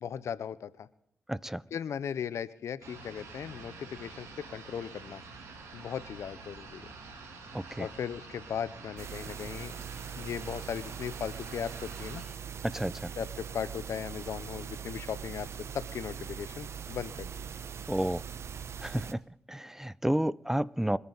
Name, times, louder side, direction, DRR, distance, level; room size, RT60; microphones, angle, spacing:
voice 1, 0.0-0.9 1.7-5.2 5.7-6.8 7.8-9.7 10.2-12.2 13.2-15.5 15.7-17.3, left 8 dB, 75° left, 0.7 m, -37 dB
voice 2, 1.3-1.6 7.5-7.9 12.6-13.1 17.9-18.2 18.8-19.2 19.5-21.0, right 1 dB, 10° right, 0.6 m, -31 dB
sound 1, 2.8-12.2, right 4 dB, 85° right, 3.1 m, -47 dB
sound 2, 9.0-19.1, right 7 dB, 65° right, 0.8 m, -41 dB
26.5 x 9.6 x 4.0 m
supercardioid pair, 45°, 5 cm